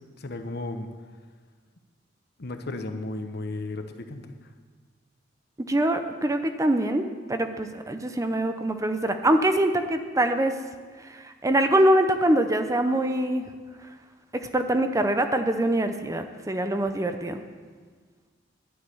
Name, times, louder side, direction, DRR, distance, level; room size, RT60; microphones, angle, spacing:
voice 1, 0.2-0.9 2.4-4.5, left 2 dB, 60° left, 7 dB, 1.0 m, -34 dB
voice 2, 5.7-10.6 11.0-13.5 14.3-17.4, right 1 dB, 15° right, 7 dB, 0.7 m, -24 dB
12.0 x 6.6 x 9.6 m, 1.5 s
head